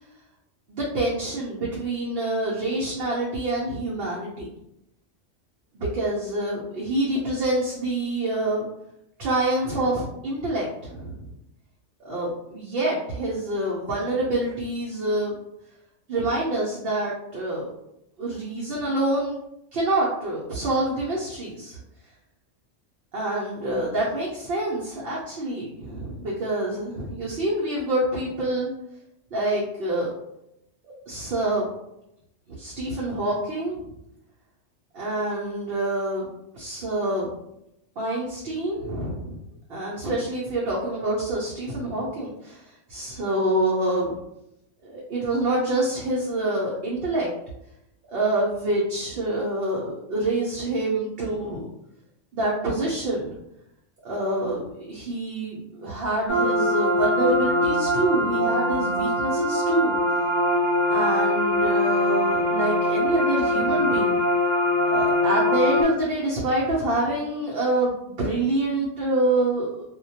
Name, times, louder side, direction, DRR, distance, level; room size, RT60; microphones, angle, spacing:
voice 1, 0.7-4.5 5.7-8.6 9.2-11.3 12.0-15.4 16.1-17.7 18.2-19.4 19.7-21.8 23.1-28.7 29.3-30.1 30.8-31.7 32.5-33.9 34.9-36.3 36.5-37.3 38.0-39.4 39.7-44.1 44.8-47.3 48.1-51.7 52.3-53.3 54.0-60.0 60.9-64.2 64.9-69.8, right 1 dB, 60° right, -5 dB, 0.7 m, -26 dB
sound 1, 56.3-65.8, left 1 dB, 45° left, 0.7 m, -22 dB
2.2 x 2.1 x 2.7 m, 0.83 s
omnidirectional pair, 1.2 m